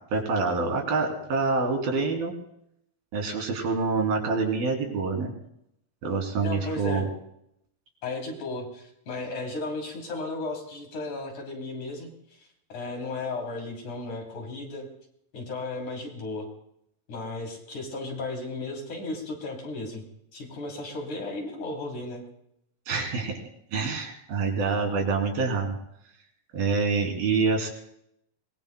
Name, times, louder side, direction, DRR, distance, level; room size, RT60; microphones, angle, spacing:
voice 1, 0.1-2.3 3.1-5.3 6.0-7.1 22.9-23.4 23.7-25.8 26.5-27.7, right 4 dB, 75° right, 2 dB, 4.8 m, -26 dB
voice 2, 6.4-7.1 8.0-14.9 15.3-16.5 17.1-20.1 20.3-22.3, left 2 dB, 50° left, 1 dB, 4.4 m, -35 dB
25.0 x 21.5 x 2.2 m, 0.75 s
omnidirectional pair, 4.4 m